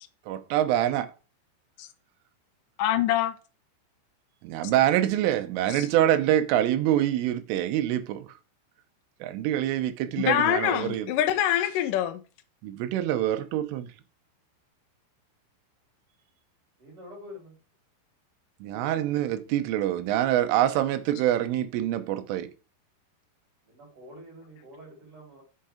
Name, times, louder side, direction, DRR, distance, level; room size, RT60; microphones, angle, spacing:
voice 1, 0.3-1.1 4.4-8.3 9.2-11.1 12.6-13.9 18.6-22.5, right 12 dB, 85° right, 3.5 m, -25 dB
voice 2, 2.8-3.3 5.7-5.9 10.2-12.2, left 11 dB, 90° left, 1.9 m, -25 dB
voice 3, 16.8-17.5 18.7-18.8 23.6-25.4, equal, 30° right, 4.9 m, -47 dB
8.2 x 5.8 x 5.0 m
omnidirectional pair, 5.6 m